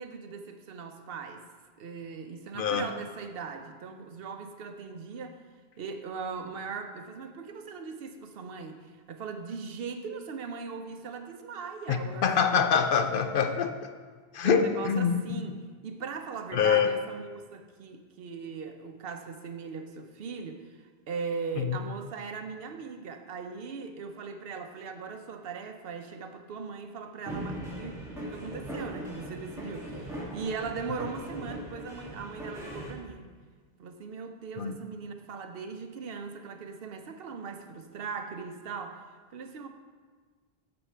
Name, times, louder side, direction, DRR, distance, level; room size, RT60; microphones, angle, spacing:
voice 1, 0.0-1.5 1.8-5.4 5.8-12.6 14.4-33.3 33.8-39.0 39.3-39.7, right 5 dB, 70° right, 6 dB, 0.8 m, -39 dB
voice 2, 2.6-2.9 11.9-13.7 14.3-15.5 16.5-16.9 21.6-21.8 34.6-34.7, left 6 dB, 65° left, 7 dB, 0.7 m, -25 dB
sound 1, 27.3-32.9, right 1 dB, 5° right, 1.8 m, -39 dB
9.6 x 7.0 x 3.3 m, 1.5 s
omnidirectional pair, 1.0 m